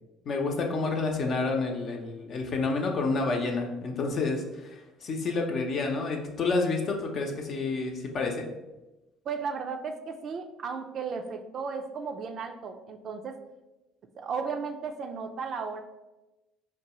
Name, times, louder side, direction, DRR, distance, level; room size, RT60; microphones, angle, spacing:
voice 1, 0.2-8.5, left 3 dB, 55° left, 2 dB, 0.7 m, -29 dB
voice 2, 9.2-13.4 14.1-15.8, right 5 dB, 50° right, 6 dB, 0.4 m, -35 dB
4.6 x 2.3 x 2.9 m, 1.0 s
hypercardioid pair, 70°, 0 cm